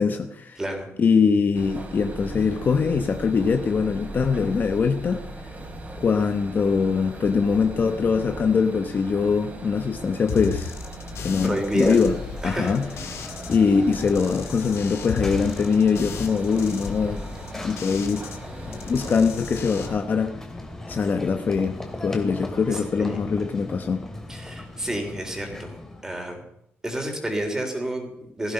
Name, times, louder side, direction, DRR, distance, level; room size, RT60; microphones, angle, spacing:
voice 1, 0.0-0.6 1.0-5.2 6.0-10.8 11.2-12.1 12.4-12.9 13.5-17.2 17.5-18.2 18.9-20.3 20.9-21.8 22.0-24.0, left 5 dB, 40° left, 7 dB, 1.0 m, -22 dB
voice 2, 0.6-0.9 11.4-12.0 12.4-12.7 22.7-23.2 24.3-25.8 26.0-26.4 26.8-28.5, right 1 dB, 10° right, 3 dB, 3.7 m, -29 dB
sound 1, 1.5-20.0, right 1 dB, 30° right, 3.5 m, -39 dB
sound 2, 10.3-13.6 13.9-18.4 18.7-19.9, left 6 dB, 65° left, 2.1 m, -35 dB
Run / Train, 11.7-26.1, left 1 dB, 10° left, 2.5 m, -39 dB
17.0 x 15.0 x 5.4 m, 0.76 s
cardioid pair, 145°, 5 cm